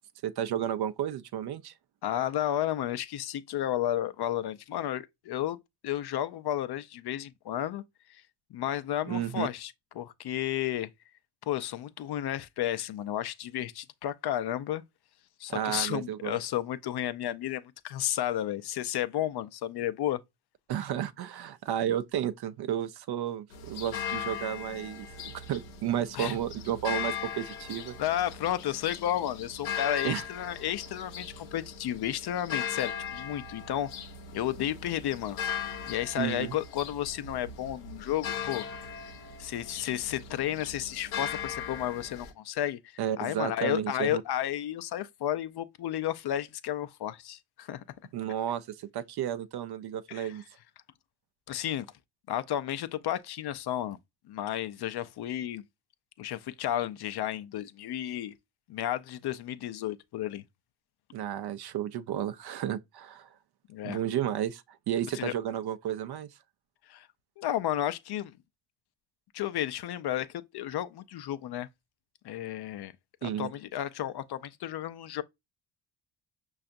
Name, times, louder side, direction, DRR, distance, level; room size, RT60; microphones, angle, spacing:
voice 1, 0.2-1.7 9.1-9.5 15.5-16.4 20.7-28.0 30.0-30.2 36.2-36.5 43.0-44.2 48.1-50.4 61.1-63.3 63.8-66.3 73.2-73.5, right 10 dB, 55° right, 0.5 m, -32 dB
voice 2, 2.0-5.6 5.8-7.8 8.1-8.2 8.5-10.9 11.5-14.8 15.4-20.2 26.1-26.4 28.0-33.9 34.3-38.7 39.4-47.8 50.1-50.4 51.5-51.9 52.3-54.0 54.3-55.6 56.2-58.3 58.7-60.4 63.7-64.0 65.1-65.3 66.9-67.1 67.4-68.3 69.3-71.7 72.2-72.9 73.2-75.2, left 12 dB, 55° left, 0.5 m, -32 dB
sound 1, 23.5-42.3, left 7 dB, 85° left, 0.8 m, -39 dB
5.6 x 2.4 x 2.5 m
supercardioid pair, 45°, 49 cm